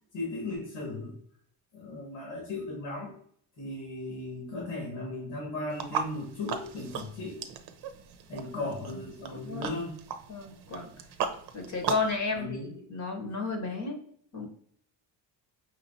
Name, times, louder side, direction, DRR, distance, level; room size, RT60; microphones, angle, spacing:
voice 1, 0.1-1.2 1.7-3.1 3.6-7.5 8.3-10.0 12.3-12.7, left 2 dB, 85° left, -2 dB, 1.9 m, -36 dB
sound 1, 5.7-12.2, right 7 dB, 60° right, 0.7 m, -37 dB
voice 2, 9.3-9.8 10.3-10.9 11.5-14.0 14.3-14.5, left 4 dB, 40° left, 4 dB, 1.0 m, -33 dB
5.9 x 2.9 x 2.7 m, 0.62 s
cardioid pair, 115°, 44 cm